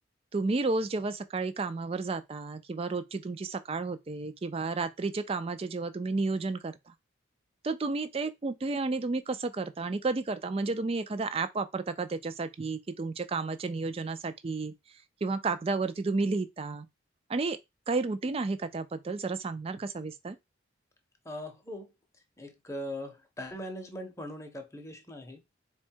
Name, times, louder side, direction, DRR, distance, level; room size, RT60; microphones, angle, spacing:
voice 1, 0.3-6.9 7.6-14.7 15.2-16.9 17.3-17.6 17.9-20.4, right 3 dB, 30° right, 0.4 m, -32 dB
voice 2, 21.2-21.9 22.4-25.4, left 1 dB, 15° left, 0.7 m, -40 dB
4.1 x 2.3 x 4.4 m
head